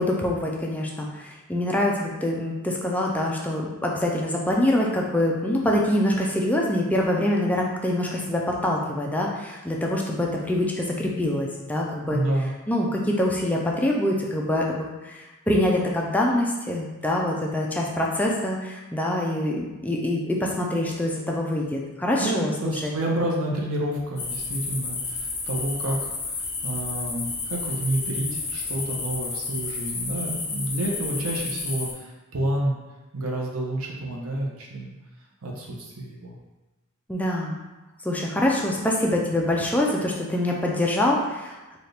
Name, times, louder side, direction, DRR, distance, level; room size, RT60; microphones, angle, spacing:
voice 1, 0.0-12.2 12.7-22.5 22.8-22.9 37.1-37.6 38.0-41.6, left 1 dB, 10° left, -2 dB, 0.4 m, -25 dB
voice 2, 12.1-12.5 22.2-32.8 33.1-34.9 35.4-36.3, right 1 dB, 90° right, -1 dB, 0.8 m, -29 dB
sound 1, 24.2-31.9, left 4 dB, 50° left, 0.8 m, -31 dB
4.2 x 2.4 x 3.3 m, 1.1 s
head